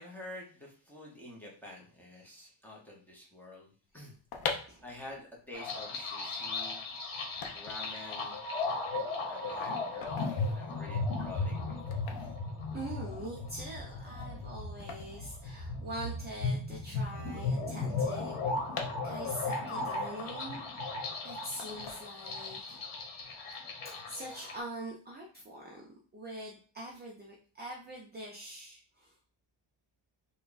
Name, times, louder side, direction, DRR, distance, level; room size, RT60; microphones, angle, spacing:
voice 1, 0.0-4.2 4.8-6.8 7.5-8.4 9.3-12.1, left 1 dB, 5° left, -4 dB, 0.7 m, -48 dB
sound 1, 4.2-16.2 16.5-16.6 16.7-19.6 20.0-21.0 21.6-22.6 22.9-23.2, left 5 dB, 45° left, 0.5 m, -44 dB
sound 2, 5.5-24.6, left 3 dB, 75° left, 1.1 m, -36 dB
voice 2, 12.7-18.3 19.0-20.6 21.2-22.9 23.3-23.6 23.8-25.9 26.1-29.1, right 1 dB, 20° right, -2 dB, 0.4 m, -44 dB
3.3 x 2.3 x 3.9 m, 0.42 s
cardioid pair, 180°, 49 cm